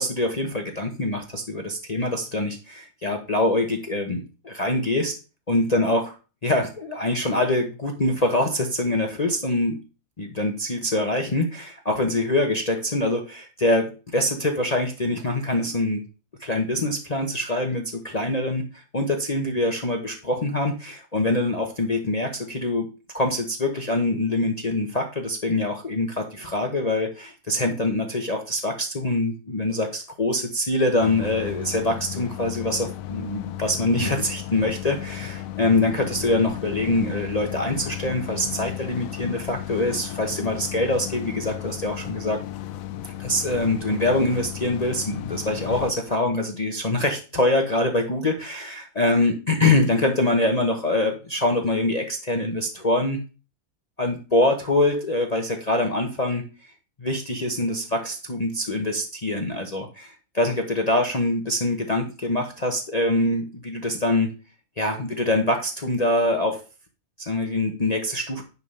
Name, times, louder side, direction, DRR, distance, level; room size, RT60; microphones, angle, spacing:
voice 1, 0.0-5.1 5.5-6.0 6.4-9.8 10.2-16.0 16.4-18.6 18.9-22.9 23.1-42.4 43.2-53.2 54.0-56.4 57.0-64.3 64.8-66.6 67.2-68.4, left 2 dB, 30° left, 2 dB, 1.0 m, -24 dB
sound 1, 31.0-45.9, left 12 dB, 70° left, 1.0 m, -35 dB
9.6 x 3.6 x 5.5 m, 0.33 s
omnidirectional pair, 1.6 m